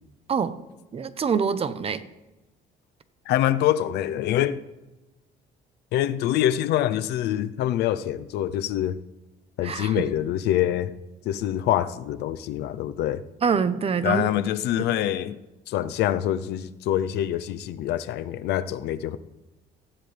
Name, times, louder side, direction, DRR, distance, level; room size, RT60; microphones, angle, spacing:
voice 1, 0.9-2.0 9.6-10.1 13.4-14.3 14.8-14.9, right 6 dB, 35° right, 13 dB, 0.9 m, -25 dB
voice 2, 3.3-4.6 5.9-9.0 9.6-10.9 11.2-13.2 14.0-15.4 15.7-19.2, left 12 dB, 80° left, 13 dB, 0.7 m, -25 dB
18.5 x 14.5 x 3.5 m, 1.1 s
cardioid pair, 110°, 17 cm